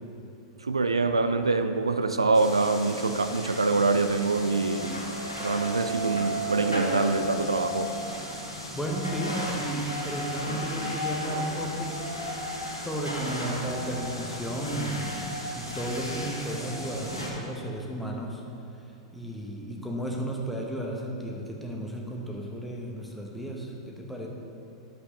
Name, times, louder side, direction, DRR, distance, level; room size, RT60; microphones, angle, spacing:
voice 1, 0.6-5.0 5.4-7.9, right 3 dB, 80° right, 9 dB, 0.4 m, -25 dB
sound 1, 2.3-17.3, equal, 90° left, 1.6 m, -34 dB
voice 2, 8.7-12.0 12.8-18.4 19.1-24.3, right 1 dB, ahead, -1 dB, 1.2 m, -34 dB
11.5 x 7.5 x 3.2 m, 3.0 s
figure-of-eight pair, 95°, 3 cm